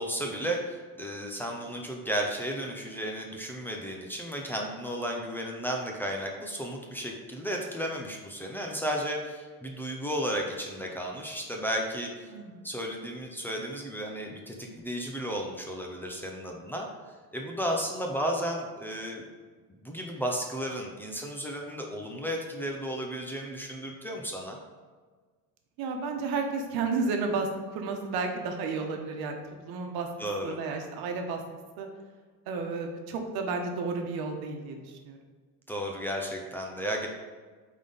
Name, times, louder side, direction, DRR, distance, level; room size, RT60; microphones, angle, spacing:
voice 1, 0.0-12.3 12.6-16.9 17.3-19.2 19.8-24.6 30.2-30.6 35.7-37.1, equal, 5° left, 0 dB, 0.5 m, -33 dB
voice 2, 12.3-12.6 25.8-29.4 29.6-30.1 30.4-31.4 31.8-31.9 32.5-35.2, right 4 dB, 85° right, 4 dB, 1.1 m, -32 dB
8.6 x 3.8 x 3.9 m, 1.5 s
cardioid pair, 170°, 36 cm